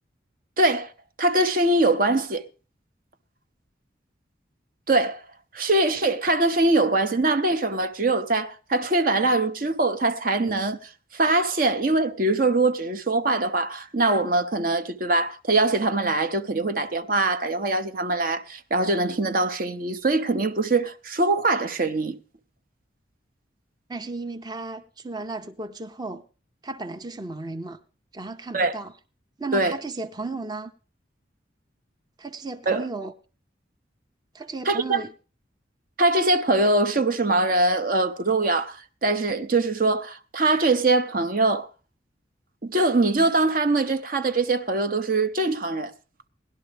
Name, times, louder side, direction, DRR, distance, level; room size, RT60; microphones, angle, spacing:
voice 1, 0.6-0.9 1.2-2.4 4.9-5.2 5.5-22.2 28.5-28.7 29.5-29.8 32.7-32.9 34.7-35.0 36.0-41.7 42.6-45.9, right 2 dB, 50° right, 0.8 m, -23 dB
voice 2, 23.9-26.2 26.6-27.8 28.1-28.9 29.4-30.7 32.2-33.1 34.3-35.1, right 3 dB, 20° right, 0.7 m, -34 dB
18.0 x 11.5 x 3.4 m
head